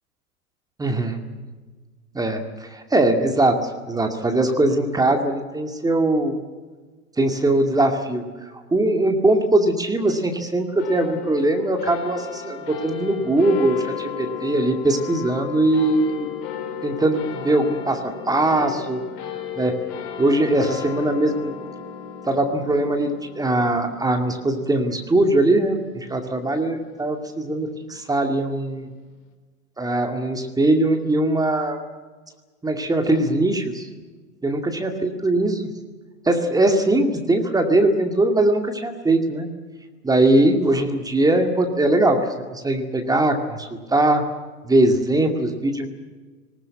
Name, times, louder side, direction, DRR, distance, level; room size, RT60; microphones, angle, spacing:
voice 1, 0.8-1.2 2.1-6.4 7.2-8.2 8.7-16.3 16.8-19.0 19.6-19.8 20.2-21.5 22.3-28.9 29.8-31.8 32.6-33.9 34.4-35.7 36.3-39.5 40.0-42.2 42.5-44.2 44.6-45.9, right 2 dB, 10° right, 5 dB, 2.2 m, -21 dB
sound 1, 10.8-27.5, left 8 dB, 40° left, 4.0 m, -35 dB
20.0 x 19.5 x 9.7 m, 1.3 s
figure-of-eight pair, 105°, 46 cm